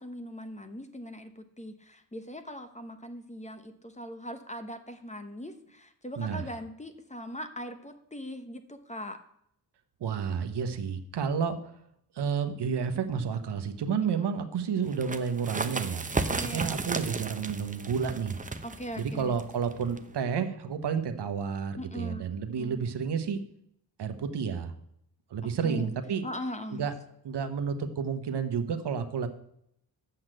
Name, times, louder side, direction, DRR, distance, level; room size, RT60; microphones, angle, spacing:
voice 1, 0.0-9.2 16.2-16.8 18.6-19.4 21.8-22.3 22.6-22.8 25.6-25.9 26.2-26.9, equal, 15° left, 8 dB, 1.0 m, -40 dB
voice 2, 6.2-6.5 10.0-11.7 12.1-18.3 19.0-23.4 24.0-24.7 25.3-26.2 26.7-26.9 27.2-29.3, right 6 dB, 70° right, 8 dB, 1.1 m, -31 dB
sound 1, 14.9-20.3, right 3 dB, 20° right, 0.7 m, -34 dB
7.8 x 5.8 x 7.8 m, 0.73 s
cardioid pair, 75°, 42 cm